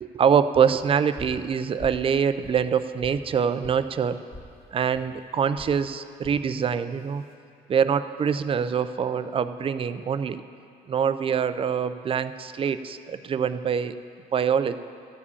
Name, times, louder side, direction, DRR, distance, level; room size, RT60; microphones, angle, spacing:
voice 1, 0.0-4.2 4.7-7.2 7.7-10.4 10.9-14.0 14.3-14.8, right 7 dB, 35° right, 12 dB, 0.4 m, -24 dB
sound 1, 1.2-1.4 1.8-2.1 2.4-3.2 3.6-3.8 4.3-4.5 4.9-5.1 5.6-5.8 6.2-6.4 7.0-7.3, left 1 dB, 35° left, 2.0 m, -43 dB
13.0 x 5.0 x 8.3 m, 2.4 s
cardioid pair, 110°, 17 cm